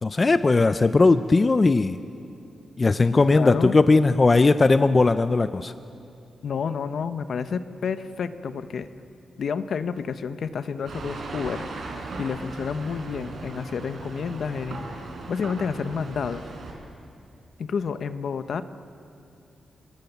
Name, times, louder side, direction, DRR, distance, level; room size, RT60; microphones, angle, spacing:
voice 1, 0.0-2.0 2.8-5.7, left 3 dB, 25° left, 11 dB, 0.5 m, -18 dB
voice 2, 3.1-3.8 6.4-8.9 9.4-11.7 12.2-14.9 15.3-16.5 17.6-18.6, left 6 dB, 60° left, 11 dB, 0.9 m, -30 dB
sound 1, 10.8-16.7, right 3 dB, 65° right, 4.8 m, -37 dB
29.0 x 19.0 x 8.1 m, 2.6 s
wide cardioid pair, 150°, 0 cm